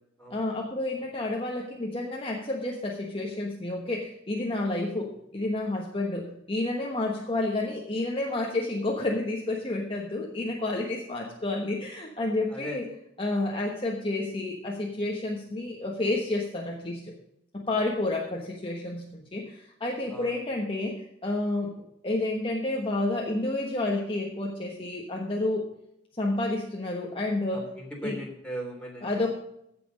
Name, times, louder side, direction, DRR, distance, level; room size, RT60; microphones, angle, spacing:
voice 1, 0.3-12.8 13.2-17.1 17.5-20.9 21.2-25.6 26.2-27.7 28.0-28.1 29.0-29.3, left 2 dB, 25° left, -1 dB, 1.2 m, -30 dB
voice 2, 12.5-12.8 20.1-20.3 27.5-29.3, right 1 dB, 5° left, -1 dB, 3.2 m, -39 dB
16.0 x 6.0 x 5.2 m, 0.79 s
head